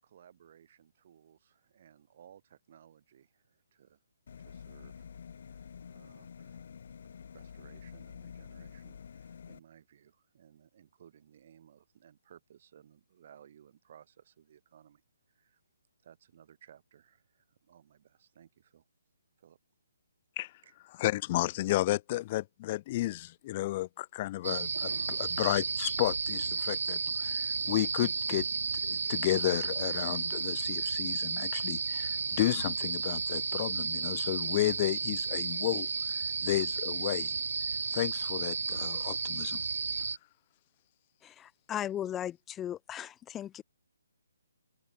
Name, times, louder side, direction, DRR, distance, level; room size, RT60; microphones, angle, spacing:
voice 1, 0.0-4.0 4.4-5.0 5.3-6.7 7.3-15.0 15.3-15.6 16.0-18.9 19.4-19.6 20.6-20.7, right 9 dB, 45° right, 6.5 m, -59 dB
sound 1, 4.3-9.6, left 7 dB, 55° left, 1.6 m, -48 dB
voice 2, 21.0-28.5 28.8-35.9 36.4-37.3 37.9-39.6, left 17 dB, 30° left, 1.4 m, -32 dB
sound 2, 24.4-40.2, right 5 dB, 75° right, 0.8 m, -33 dB
voice 3, 41.2-43.6, left 11 dB, 10° left, 0.7 m, -37 dB
hypercardioid pair, 160°, 0 cm